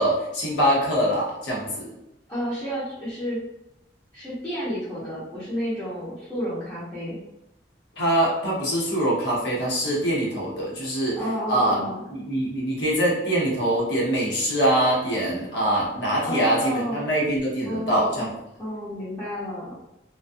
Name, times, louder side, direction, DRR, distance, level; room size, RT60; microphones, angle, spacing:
voice 1, 0.0-1.9 8.0-11.2 11.5-18.3, right 1 dB, 80° left, -5 dB, 0.9 m, -24 dB
voice 2, 2.3-3.4 4.1-7.2 11.2-12.0 16.3-17.0 17.6-18.3 18.6-19.7, equal, 15° left, -14 dB, 0.8 m, -31 dB
2.3 x 2.3 x 2.6 m, 0.89 s
head